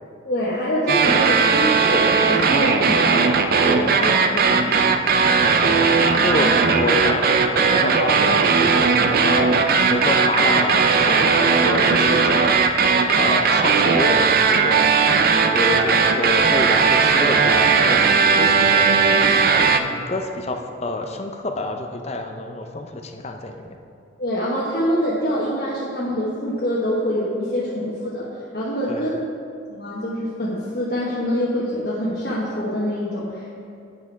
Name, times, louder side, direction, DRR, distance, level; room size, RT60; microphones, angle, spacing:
voice 1, 0.2-3.3 3.6-4.7 6.4-6.5 24.2-28.3 28.5-29.1 29.7-33.5, equal, 50° left, -8 dB, 1.3 m, -25 dB
sound 1, 0.9-19.8, right 5 dB, 50° right, 0.4 m, -17 dB
voice 2, 2.7-3.2 5.4-5.8 6.2-9.5 9.9-12.6 13.1-14.9 15.5-19.3 19.6-23.8 28.9-29.2, left 2 dB, 35° left, 4 dB, 0.6 m, -28 dB
8.7 x 6.1 x 4.6 m, 2.5 s
head